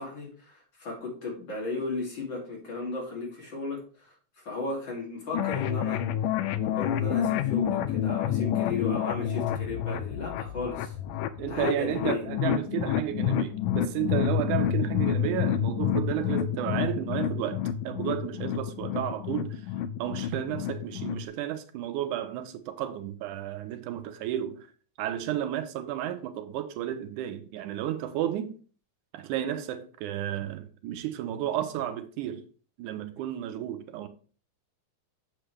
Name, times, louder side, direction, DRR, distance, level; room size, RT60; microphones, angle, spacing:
voice 1, 0.0-6.0 6.6-11.0 11.5-12.2, left 3 dB, 40° left, 3.1 m, -35 dB
sound 1, 5.3-21.3, left 10 dB, 80° left, 1.6 m, -29 dB
voice 2, 11.4-19.6 20.0-24.7 25.0-28.6 29.1-32.4 32.8-34.1, right 12 dB, 85° right, 2.2 m, -32 dB
8.2 x 6.6 x 3.3 m
omnidirectional pair, 3.5 m